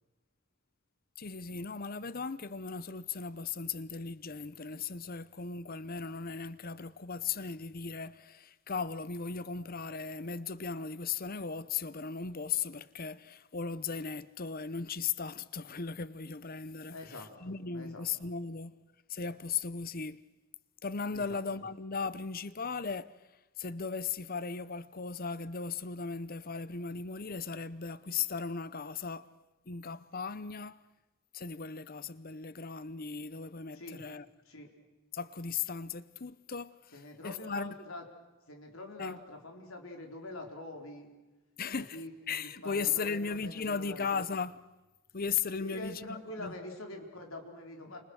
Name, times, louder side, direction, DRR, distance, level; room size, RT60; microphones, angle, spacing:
voice 1, 1.2-18.7 19.1-20.2 20.8-23.1 23.6-29.3 29.7-30.8 31.3-34.3 35.1-36.7 37.2-37.7 39.0-39.2 41.6-42.0 42.3-44.6 45.1-46.5, left 5 dB, 45° left, 0.8 m, -37 dB
voice 2, 16.9-18.1 21.1-21.4 33.7-34.0 34.5-34.7 36.9-38.1 38.5-41.1 41.8-44.2 45.6-48.0, left 2 dB, 75° left, 4.2 m, -45 dB
30.0 x 28.5 x 6.4 m
head